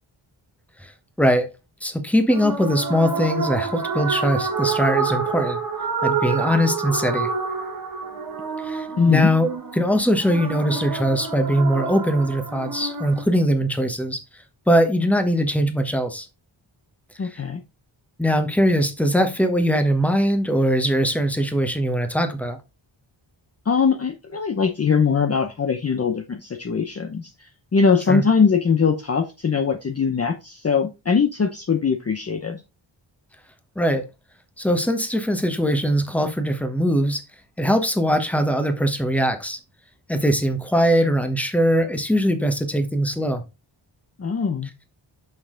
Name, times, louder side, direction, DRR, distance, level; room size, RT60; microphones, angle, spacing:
voice 1, 1.8-5.6 6.0-7.3 8.6-14.2 14.7-16.3 17.3-17.4 18.2-22.6 28.1-28.2 33.8-34.1 34.6-37.2 37.6-39.6 40.1-43.4, equal, 5° left, 1.2 m, -21 dB
sound 1, 2.3-13.2, right 5 dB, 45° right, 1.3 m, -28 dB
voice 2, 9.0-9.3 17.2-17.6 23.7-27.3 27.7-32.6 44.2-44.7, left 5 dB, 30° left, 0.7 m, -21 dB
6.5 x 5.7 x 3.8 m
wide cardioid pair, 135°, 47 cm